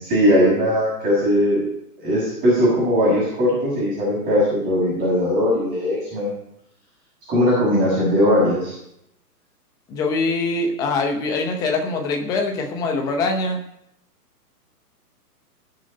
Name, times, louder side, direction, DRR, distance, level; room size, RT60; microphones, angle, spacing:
voice 1, 0.0-1.6 2.0-6.3 7.3-8.7, equal, 20° right, -7 dB, 6.1 m, -19 dB
voice 2, 9.9-13.6, left 3 dB, 10° left, 3 dB, 0.7 m, -23 dB
19.0 x 6.6 x 5.2 m, 0.79 s
hypercardioid pair, 150°, 48 cm